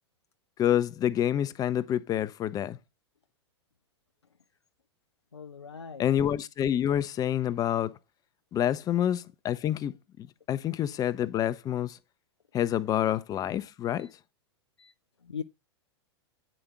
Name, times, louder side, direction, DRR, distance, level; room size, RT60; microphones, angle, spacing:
voice 1, 0.6-2.8 6.0-7.9 8.5-12.0 12.5-14.1, left 10 dB, 25° left, 0.6 m, -28 dB
voice 2, 5.3-6.0 14.0-14.1 14.8-14.9 15.2-15.4, left 6 dB, 90° left, 0.4 m, -40 dB
8.8 x 5.1 x 4.5 m
figure-of-eight pair, 95°, 14 cm